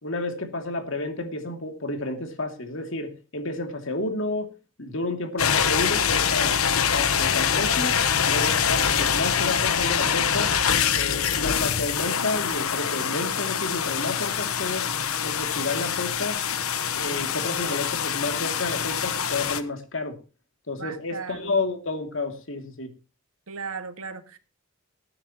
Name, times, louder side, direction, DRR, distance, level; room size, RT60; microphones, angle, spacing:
voice 1, 0.0-4.5 4.8-6.6 6.9-8.0 8.3-10.5 10.9-14.8 15.2-16.4 16.9-20.2 20.7-22.9, left 2 dB, 65° left, 2.6 m, -30 dB
sound 1, 5.4-19.6, left 7 dB, 85° left, 1.2 m, -24 dB
voice 2, 20.8-21.5 23.5-24.4, right 5 dB, 85° right, 1.7 m, -36 dB
19.5 x 9.7 x 2.9 m
head